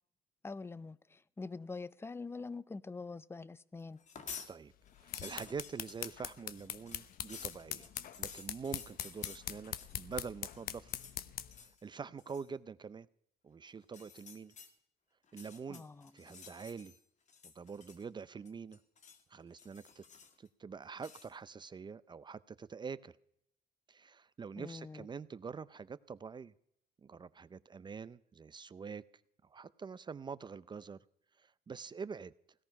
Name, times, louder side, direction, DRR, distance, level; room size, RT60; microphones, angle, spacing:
voice 1, 0.4-4.0 15.7-16.1 24.6-25.1, left 4 dB, 15° left, 0.6 m, -45 dB
sound 1, 4.0-4.5 4.9-10.2 10.5-11.2 11.5-11.8 12.2-12.5 13.8-14.7 15.2-17.0 17.3-18.2 18.5-19.2 19.6-20.5 21.0-21.3, left 6 dB, 45° left, 2.0 m, -52 dB
sound 2, 4.8-11.6, left 11 dB, 60° left, 0.9 m, -43 dB
voice 2, 5.2-7.9 8.2-10.9 11.5-13.1 13.4-14.5 15.3-15.8 16.1-16.9 17.4-18.8 19.3-20.0 20.4-23.2 23.9-26.5 27.0-29.0 29.4-31.0 31.4-32.3, right 5 dB, 25° right, 0.5 m, -45 dB
17.0 x 13.0 x 5.8 m
cardioid pair, 110°, 17 cm